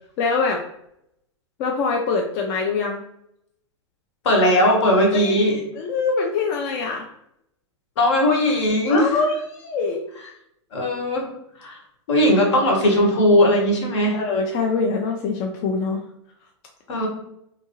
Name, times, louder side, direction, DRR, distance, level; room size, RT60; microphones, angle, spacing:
voice 1, 0.2-0.6 1.6-3.0 5.1-5.4 5.8-7.1 8.9-10.0 14.1-16.0, left 4 dB, 45° left, 1 dB, 0.4 m, -24 dB
voice 2, 4.2-5.6 8.0-9.0 10.7-11.3 11.6-11.8 12.1-14.2 16.9-17.1, left 1 dB, 70° left, 1 dB, 1.1 m, -18 dB
2.7 x 2.6 x 2.8 m, 0.76 s
hypercardioid pair, 120°, 16 cm